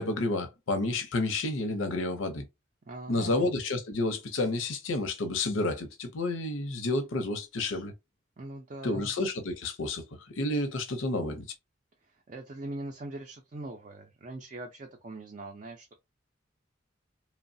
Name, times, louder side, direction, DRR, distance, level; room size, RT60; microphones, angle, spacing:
voice 1, 0.0-2.4 3.1-7.9 8.8-10.0 10.4-11.4, left 2 dB, 80° left, 0.6 m, -30 dB
voice 2, 2.9-3.4 8.4-9.1 12.0-15.9, right 2 dB, 40° right, 0.4 m, -42 dB
3.0 x 2.0 x 2.6 m
head